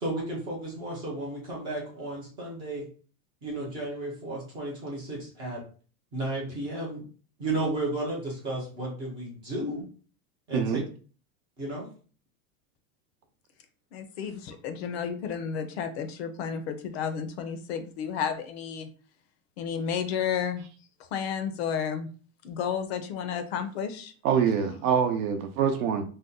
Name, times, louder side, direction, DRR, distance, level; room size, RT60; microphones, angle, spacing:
voice 1, 0.0-2.9 3.4-5.6 6.1-7.0 7.4-9.9 10.5-10.8 11.6-11.9, right 2 dB, 15° right, -4 dB, 0.3 m, -33 dB
voice 2, 10.5-10.8 24.2-26.0, right 7 dB, 80° right, 5 dB, 0.7 m, -25 dB
voice 3, 13.9-18.9 19.6-20.6 21.1-22.1 22.4-24.1, left 7 dB, 50° left, 8 dB, 0.5 m, -32 dB
2.6 x 2.1 x 3.7 m, 0.40 s
supercardioid pair, 160°, 43 cm